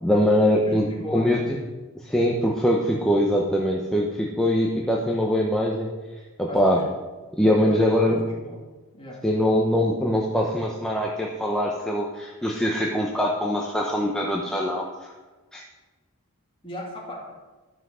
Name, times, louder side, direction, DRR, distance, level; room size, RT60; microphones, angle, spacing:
voice 1, 0.0-1.4 2.0-5.9 6.4-6.8 7.4-8.2 9.2-15.1 15.5-15.6, equal, 5° left, -2 dB, 0.8 m, -22 dB
voice 2, 0.6-1.4 6.5-6.8 7.4-8.6 8.9-9.2 16.6-17.3, equal, 25° left, -2 dB, 2.5 m, -37 dB
12.5 x 5.8 x 6.3 m, 1.3 s
head